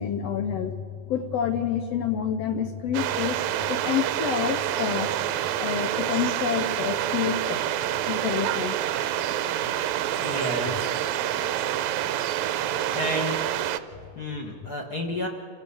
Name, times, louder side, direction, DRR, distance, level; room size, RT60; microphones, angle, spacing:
voice 1, 0.0-3.4 3.7-5.1 5.5-7.6 8.1-8.8 9.6-9.7 10.1-11.0, left 8 dB, 75° left, 8 dB, 1.5 m, -29 dB
sound 1, 2.9-13.8, right 12 dB, 75° right, 1.7 m, -27 dB
voice 2, 10.2-10.9 12.9-13.4 14.1-15.3, equal, 40° left, 2 dB, 1.5 m, -30 dB
28.5 x 15.0 x 7.0 m, 2.5 s
omnidirectional pair, 3.8 m